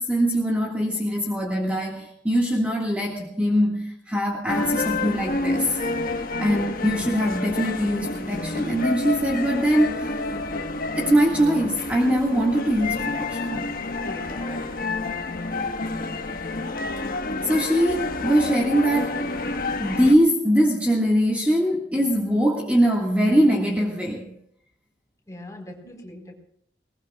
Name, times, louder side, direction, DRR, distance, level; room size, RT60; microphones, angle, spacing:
voice 1, 0.0-5.8 6.4-10.1 11.0-13.6 17.4-19.3 19.8-24.3, equal, 10° right, -2 dB, 1.8 m, -22 dB
sound 1, 4.5-20.1, left 2 dB, 50° left, 1.3 m, -29 dB
voice 2, 13.9-14.6 25.3-26.4, left 1 dB, 15° left, 0 dB, 4.4 m, -41 dB
21.0 x 20.5 x 2.4 m, 0.72 s
head